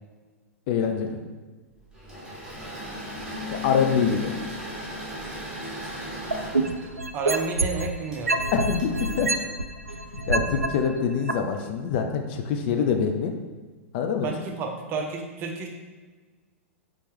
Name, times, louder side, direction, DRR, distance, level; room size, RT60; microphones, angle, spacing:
voice 1, 0.7-1.2 3.6-4.3 8.5-9.3 10.3-13.3 13.9-14.3, left 6 dB, 45° left, 4 dB, 0.4 m, -25 dB
Engine / Mechanisms, 1.9-10.3, left 1 dB, 10° right, 1.4 m, -37 dB
sound 1, 6.3-7.9 8.3-10.7 11.3-11.4, right 2 dB, 90° right, 0.3 m, -25 dB
voice 2, 7.1-8.4 14.2-15.7, right 4 dB, 30° right, 2 dB, 0.6 m, -31 dB
4.2 x 3.1 x 3.5 m, 1.3 s
figure-of-eight pair, 100°, 8 cm